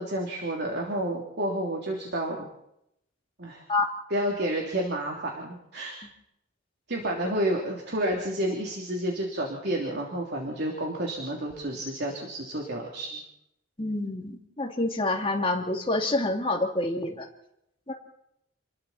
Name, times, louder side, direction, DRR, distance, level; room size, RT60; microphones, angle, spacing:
voice 1, 0.0-2.5 3.4-3.6 4.1-6.0 6.9-13.2, right 1 dB, 60° right, 0 dB, 3.3 m, -30 dB
voice 2, 13.8-17.3 17.9-18.0, left 2 dB, 30° left, 1 dB, 2.8 m, -27 dB
29.0 x 21.5 x 4.4 m, 0.80 s
head